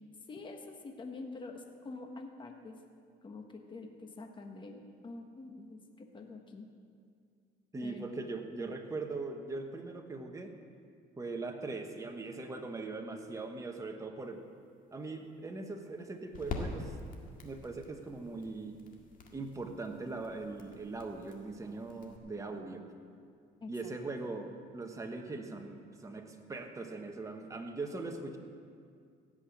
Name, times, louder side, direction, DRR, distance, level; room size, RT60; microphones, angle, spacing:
voice 1, 0.3-2.8 3.2-6.7 7.8-8.0 23.6-23.7, left 3 dB, 30° left, 3 dB, 1.3 m, -46 dB
voice 2, 7.7-10.5 11.2-14.4 14.9-16.9 17.4-18.8 19.3-22.8 23.7-28.4, right 3 dB, 20° right, 3 dB, 1.3 m, -40 dB
sound 1, 14.2-22.2, left 3 dB, 55° left, 1.9 m, -46 dB
16.5 x 5.8 x 8.6 m, 2.2 s
cardioid pair, 110°, 17 cm